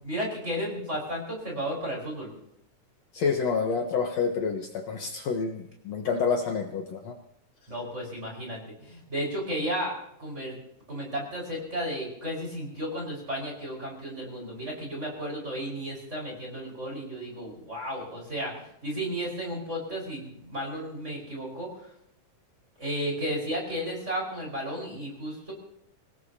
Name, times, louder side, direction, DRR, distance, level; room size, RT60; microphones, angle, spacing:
voice 1, 0.0-2.3 7.7-10.6 10.9-21.7 22.8-25.5, equal, 20° right, -2 dB, 5.2 m, -33 dB
voice 2, 3.1-7.2, left 5 dB, 60° left, 3 dB, 2.2 m, -28 dB
26.5 x 18.5 x 2.9 m, 0.75 s
omnidirectional pair, 3.7 m